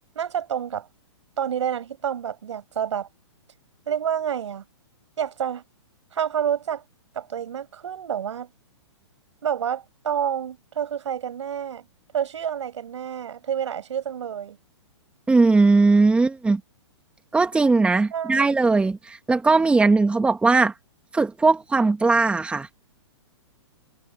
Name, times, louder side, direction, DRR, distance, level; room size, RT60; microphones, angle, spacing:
voice 1, 0.1-0.9 1.4-3.1 3.9-4.6 5.2-5.6 6.1-6.8 7.1-8.5 9.4-11.8 12.1-14.6 18.1-18.6, right 9 dB, 75° right, 6.8 m, -28 dB
voice 2, 15.3-16.6 17.3-20.7 21.1-22.7, right 3 dB, 5° right, 2.2 m, -19 dB
hypercardioid pair, 135°, 15 cm